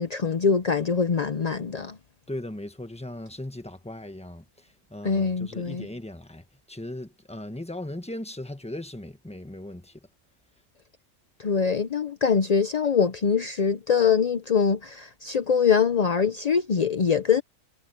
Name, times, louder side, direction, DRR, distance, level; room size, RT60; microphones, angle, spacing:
voice 1, 0.0-2.0 5.0-5.9 11.4-17.4, left 6 dB, 50° left, 0.4 m, -23 dB
voice 2, 2.3-10.1, left 1 dB, 5° left, 1.2 m, -38 dB
omnidirectional pair, 1.6 m